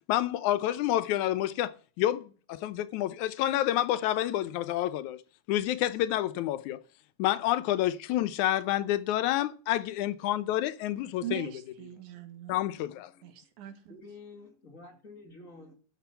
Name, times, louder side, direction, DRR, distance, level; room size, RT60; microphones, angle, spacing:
voice 1, 0.1-5.2 5.5-6.8 7.2-11.5 12.5-13.1, left 13 dB, 85° left, 2.2 m, -29 dB
voice 2, 11.2-12.6 13.2-14.0, right 12 dB, 85° right, 2.9 m, -41 dB
voice 3, 13.9-15.7, left 3 dB, 30° left, 2.1 m, -49 dB
13.0 x 6.8 x 5.7 m
omnidirectional pair, 3.4 m